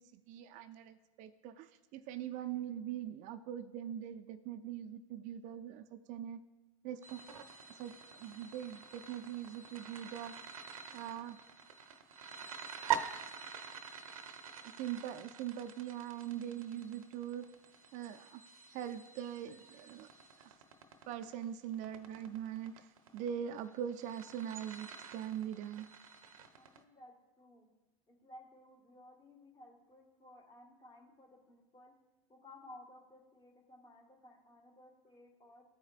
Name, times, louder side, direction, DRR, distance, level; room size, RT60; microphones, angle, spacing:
voice 1, 0.0-6.4 6.8-7.2 7.8-10.3 10.9-11.4 14.8-17.5 17.9-18.4 18.7-20.1 20.4-20.6 21.1-22.9 23.1-25.9, right 10 dB, 45° right, 8 dB, 0.4 m, -42 dB
sound 1, 7.0-26.8, right 8 dB, 90° right, 0.7 m, -45 dB
voice 2, 12.6-13.1 26.5-27.7 28.1-31.9 32.3-35.6, left 1 dB, 25° left, 2 dB, 1.6 m, -57 dB
14.0 x 4.9 x 2.4 m, 1.1 s
hypercardioid pair, 105°, 17 cm